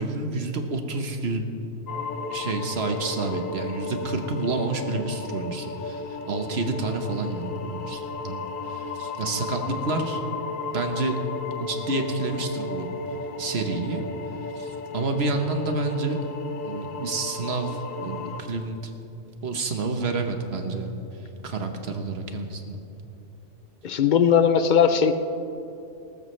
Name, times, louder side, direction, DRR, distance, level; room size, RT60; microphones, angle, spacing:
voice 1, 0.0-1.4 2.3-10.2 10.7-11.2 11.6-12.9 13.4-14.0 14.6-16.2 16.6-18.9 19.4-21.0 21.4-22.8, right 3 dB, 55° right, 5 dB, 1.3 m, -29 dB
sound 1, 1.9-18.4, left 3 dB, 85° left, 1.2 m, -34 dB
voice 2, 23.8-25.1, left 7 dB, 55° left, 10 dB, 0.5 m, -19 dB
19.5 x 12.5 x 3.2 m, 2.9 s
omnidirectional pair, 1.3 m